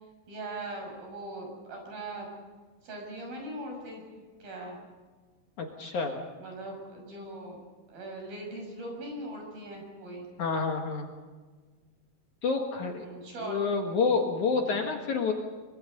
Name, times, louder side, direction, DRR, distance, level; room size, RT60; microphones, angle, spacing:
voice 1, 0.3-2.3 2.8-4.0 4.4-4.8 6.4-7.6 7.9-10.3 13.0-13.6 14.7-14.9, right 2 dB, 60° right, 1 dB, 8.1 m, -40 dB
voice 2, 5.6-6.2 10.4-11.1 12.4-13.0 13.4-15.3, left 4 dB, 55° left, 2 dB, 2.7 m, -28 dB
24.5 x 24.5 x 5.3 m, 1.4 s
omnidirectional pair, 4.7 m